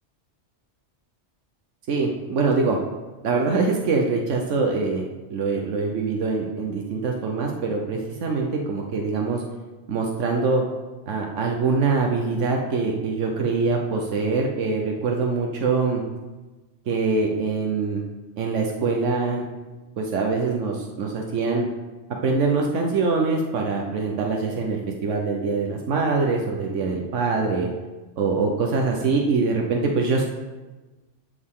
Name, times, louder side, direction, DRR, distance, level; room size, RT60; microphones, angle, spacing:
voice 1, 1.9-2.8 3.2-5.0 5.3-9.4 9.9-10.6 11.1-16.0 16.9-18.0 18.4-19.4 20.0-21.7 22.2-27.7 28.2-30.3, right 4 dB, 90° right, 0 dB, 1.3 m, -24 dB
12.0 x 6.5 x 3.7 m, 1.2 s
omnidirectional pair, 1.2 m